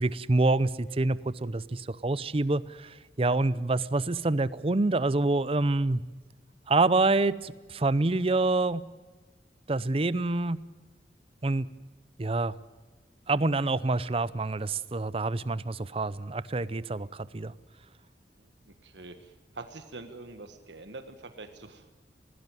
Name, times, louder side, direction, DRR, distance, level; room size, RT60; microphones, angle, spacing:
voice 1, 0.0-6.0 6.7-8.8 9.7-10.6 11.4-11.7 12.2-12.5 13.3-17.5, right 2 dB, 30° right, 18 dB, 0.6 m, -27 dB
voice 2, 18.8-19.1 19.6-21.9, right 3 dB, 80° right, 8 dB, 1.5 m, -44 dB
20.5 x 16.5 x 9.2 m, 1.3 s
head